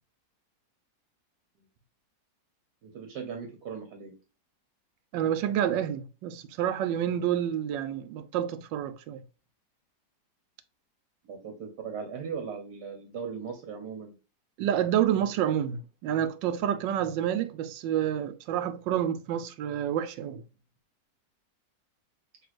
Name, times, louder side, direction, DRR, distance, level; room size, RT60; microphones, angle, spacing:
voice 1, 2.8-4.2 11.2-14.1, right 6 dB, 65° right, 1.4 m, -38 dB
voice 2, 5.1-9.2 14.6-20.4, right 10 dB, 90° right, 1.3 m, -28 dB
6.0 x 3.2 x 2.4 m
omnidirectional pair, 1.9 m